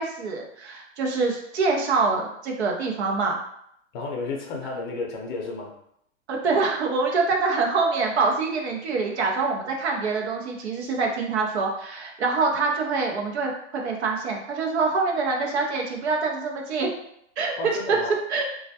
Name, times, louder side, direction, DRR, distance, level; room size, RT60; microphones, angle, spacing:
voice 1, 0.0-3.4 6.3-16.9 17.4-18.0 18.3-18.4, right 4 dB, 65° right, 1 dB, 0.7 m, -25 dB
voice 2, 3.9-5.7 17.6-18.2, left 3 dB, 40° left, 0 dB, 0.6 m, -32 dB
2.3 x 2.1 x 2.7 m, 0.72 s
hypercardioid pair, 155°, 36 cm